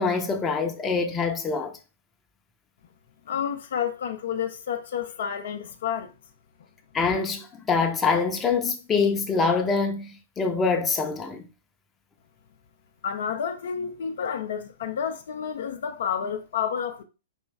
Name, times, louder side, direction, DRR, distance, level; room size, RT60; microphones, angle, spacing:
voice 1, 0.0-1.7 6.9-11.5, left 4 dB, 15° left, 0.7 m, -25 dB
voice 2, 3.3-6.1 13.0-17.0, left 8 dB, 60° left, 0.5 m, -30 dB
4.5 x 3.0 x 3.3 m
figure-of-eight pair, 110°, 0 cm